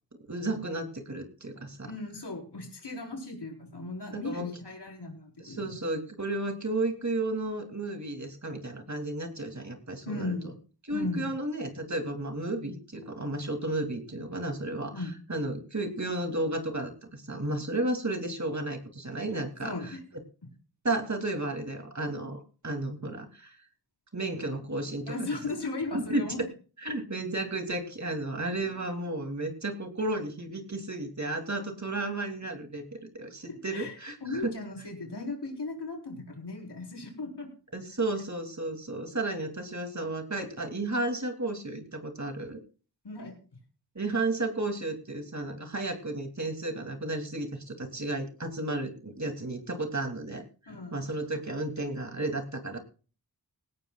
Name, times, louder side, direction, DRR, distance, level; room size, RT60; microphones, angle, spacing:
voice 1, 0.3-1.9 4.1-4.5 5.4-10.3 10.9-14.9 15.3-19.7 20.8-23.6 24.1-25.1 25.9-26.3 26.8-32.8 33.2-34.5 37.7-42.6 43.9-50.4 50.9-52.8, right 2 dB, 45° right, 5 dB, 2.8 m, -33 dB
voice 2, 1.8-5.8 10.0-10.6 10.9-11.3 14.9-15.1 19.6-20.0 25.1-26.4 33.5-37.5 43.0-43.3 50.7-51.1, left 2 dB, 90° left, 1 dB, 4.5 m, -37 dB
19.0 x 16.5 x 2.4 m, 0.38 s
wide cardioid pair, 50°, 39 cm